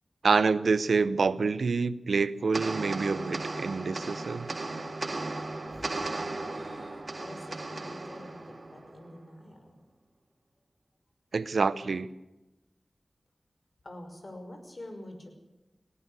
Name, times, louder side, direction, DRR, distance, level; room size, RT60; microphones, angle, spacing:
voice 1, 0.2-4.5 11.3-12.1, right 4 dB, 90° right, 16 dB, 0.7 m, -27 dB
sound 1, 2.5-9.2, right 2 dB, 55° right, 2.1 m, -36 dB
voice 2, 6.5-9.8 13.8-15.3, left 1 dB, 50° left, 5 dB, 5.7 m, -46 dB
19.0 x 17.0 x 8.2 m, 1.0 s
wide cardioid pair, 50°, 0 cm